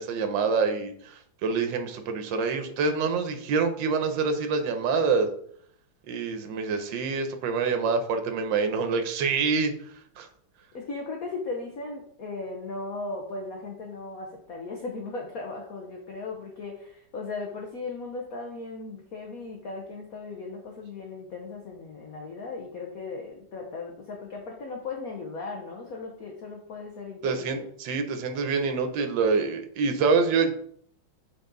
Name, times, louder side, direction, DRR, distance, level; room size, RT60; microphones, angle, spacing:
voice 1, 0.0-5.3 6.1-9.7 10.2-10.3 27.2-30.5, right 4 dB, 70° right, 6 dB, 1.5 m, -26 dB
voice 2, 10.7-27.7, left 3 dB, 55° left, 1 dB, 1.2 m, -37 dB
7.3 x 4.1 x 3.9 m, 0.63 s
omnidirectional pair, 2.2 m